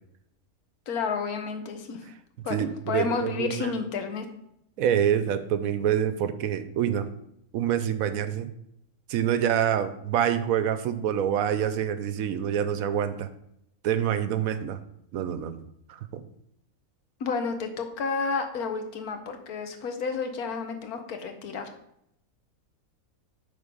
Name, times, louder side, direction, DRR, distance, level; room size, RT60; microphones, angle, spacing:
voice 1, 0.9-2.0 2.4-4.2 17.2-21.7, left 5 dB, 80° left, 7 dB, 1.4 m, -31 dB
voice 2, 2.5-3.7 4.8-7.1 7.5-8.5 9.1-13.3 13.8-14.8 15.1-15.6 15.9-16.2, right 9 dB, 75° right, 11 dB, 1.0 m, -26 dB
8.8 x 3.8 x 5.3 m, 0.77 s
omnidirectional pair, 1.5 m